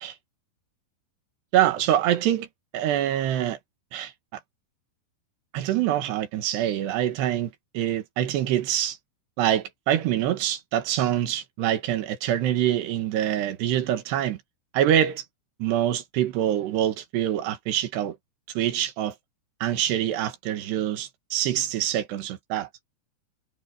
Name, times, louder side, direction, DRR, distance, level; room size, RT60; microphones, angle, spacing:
voice 1, 1.5-2.5 2.7-3.6 3.9-4.1 5.5-9.0 9.4-14.4 14.7-15.3 15.6-18.2 18.6-19.2 19.6-22.7, right 11 dB, 75° right, 3.6 m, -25 dB
omnidirectional pair, 5.0 m